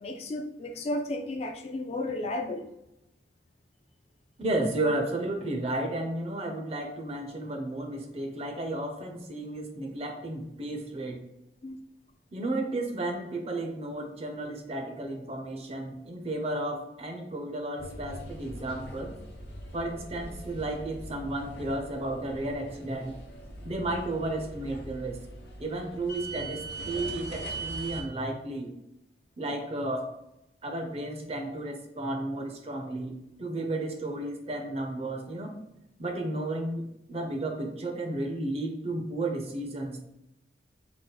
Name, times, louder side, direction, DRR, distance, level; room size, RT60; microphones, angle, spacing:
voice 1, 0.0-2.6 11.6-11.8 14.7-14.8, left 1 dB, 35° left, 5 dB, 0.3 m, -33 dB
voice 2, 4.4-11.2 12.3-19.1 19.7-23.1 23.6-25.2 25.6-28.7 29.4-30.0 30.6-33.1 33.4-35.5 36.0-36.8 37.1-40.0, right 2 dB, 35° right, 3 dB, 0.6 m, -33 dB
sound 1, 17.8-28.0, right 2 dB, 65° left, 0.8 m, -41 dB
3.9 x 2.1 x 3.8 m, 0.84 s
head